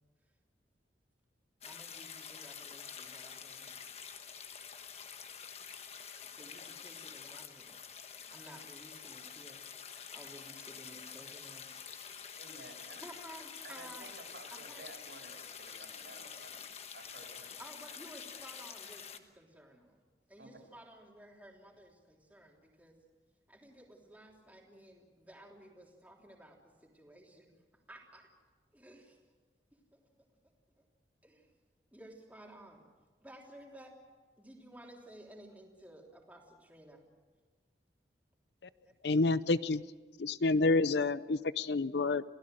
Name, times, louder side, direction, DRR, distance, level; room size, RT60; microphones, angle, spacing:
sound 1, 1.6-19.2, left 7 dB, 35° left, 1.3 m, -48 dB
voice 1, 1.6-3.8 6.2-7.8 8.3-9.6 10.1-12.3 13.0-14.2 14.5-14.8 17.6-20.0 20.3-23.0 23.5-27.5 27.9-28.3 28.7-29.0 30.8-30.9 31.2-31.5 31.9-32.8 33.2-33.9 34.4-37.0, right 1 dB, 10° right, -1 dB, 3.3 m, -54 dB
voice 2, 12.4-13.0 13.6-16.6 16.9-17.5 20.4-20.6, right 2 dB, 70° right, 2 dB, 5.3 m, -53 dB
voice 3, 39.0-39.8 40.2-42.2, left 3 dB, 75° left, 16 dB, 0.6 m, -29 dB
28.0 x 16.5 x 7.8 m, 1.4 s
head